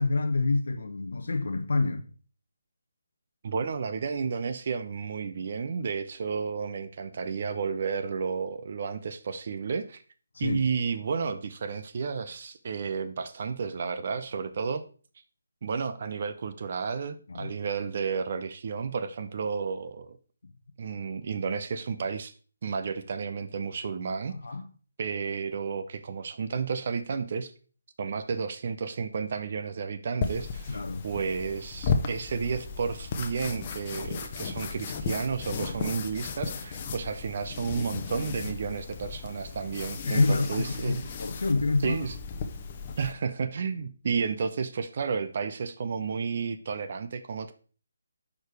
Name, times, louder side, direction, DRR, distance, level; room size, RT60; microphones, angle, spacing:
voice 1, 0.0-2.1 10.3-10.6 17.3-17.5 24.4-24.7 30.7-31.1 40.0-42.0, left 3 dB, 65° left, 0.7 m, -27 dB
voice 2, 3.4-10.0 10.4-14.8 15.6-20.2 20.8-22.3 22.6-24.3 25.0-27.5 28.0-41.0 41.8-42.2 43.0-47.5, right 5 dB, 45° right, 0.5 m, -32 dB
sound 1, 30.2-43.1, left 5 dB, 30° left, 0.8 m, -35 dB
6.5 x 4.8 x 4.6 m
figure-of-eight pair, 150°, 0 cm